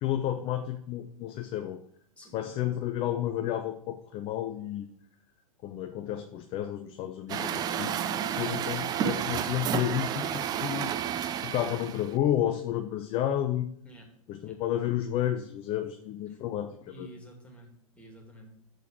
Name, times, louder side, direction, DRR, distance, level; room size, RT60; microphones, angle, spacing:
voice 1, 0.0-1.8 2.3-4.9 5.6-10.3 10.6-10.9 11.4-13.7 14.3-17.1, left 11 dB, 30° left, 7 dB, 0.6 m, -31 dB
voice 2, 2.2-2.5 8.3-8.7 13.8-14.1 14.4-14.6 16.3-16.4 16.9-18.5, right 3 dB, 5° left, 0 dB, 2.4 m, -48 dB
Truck, 7.3-12.1, right 9 dB, 20° right, 0.5 m, -31 dB
6.9 x 6.2 x 6.1 m, 0.68 s
figure-of-eight pair, 100°, 18 cm